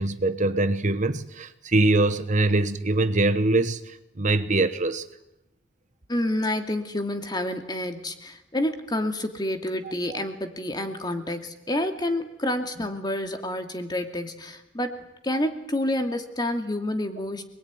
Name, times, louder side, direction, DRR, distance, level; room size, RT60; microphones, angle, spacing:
voice 1, 0.0-5.0 10.1-10.2, right 2 dB, 40° right, 1.1 m, -23 dB
voice 2, 6.1-17.4, left 1 dB, 20° left, 2.4 m, -29 dB
27.0 x 21.0 x 9.6 m
head